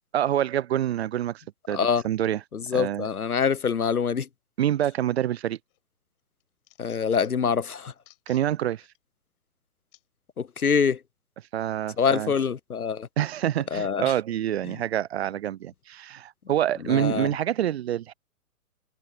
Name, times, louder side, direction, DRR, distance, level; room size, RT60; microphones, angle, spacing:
voice 1, 0.1-2.4 2.7-3.1 4.6-5.6 8.3-8.8 11.5-12.3 13.2-18.1, right 11 dB, 45° right, 1.0 m, -27 dB
voice 2, 2.7-4.2 6.8-7.9 10.6-11.0 12.0-13.1 13.7-14.0 16.9-17.3, left 6 dB, 85° left, 0.9 m, -24 dB
Sellotape usage, 5.4-5.8 6.2-7.5 8.0-8.5 8.9-9.0 9.9-10.0 10.8-10.9, left 17 dB, 40° left, 6.5 m, -57 dB
figure-of-eight pair, 120°, 43 cm